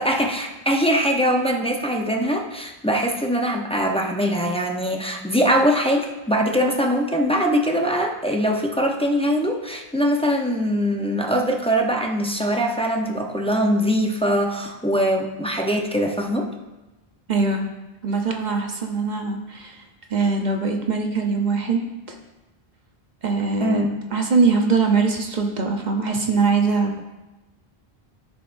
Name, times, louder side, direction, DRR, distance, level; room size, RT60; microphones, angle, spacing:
voice 1, 0.0-16.5 23.6-23.9, equal, 5° left, 1 dB, 0.6 m, -22 dB
voice 2, 17.3-17.7 18.0-19.8 20.1-21.8 22.1-22.2 23.2-27.0, right 4 dB, 50° right, 3 dB, 0.9 m, -22 dB
13.0 x 6.5 x 2.6 m, 1.1 s
omnidirectional pair, 1.0 m